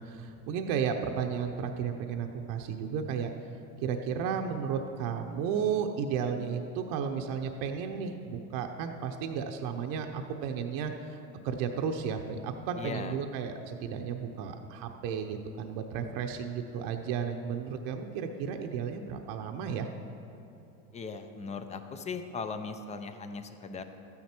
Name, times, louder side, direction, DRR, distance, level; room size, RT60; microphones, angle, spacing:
voice 1, 0.0-3.3 3.8-19.9, right 7 dB, 55° right, 4 dB, 0.8 m, -33 dB
voice 2, 12.8-13.2 20.9-23.8, left 4 dB, 15° left, 9 dB, 0.5 m, -38 dB
13.0 x 9.5 x 4.4 m, 2.9 s
supercardioid pair, 125°, 43 cm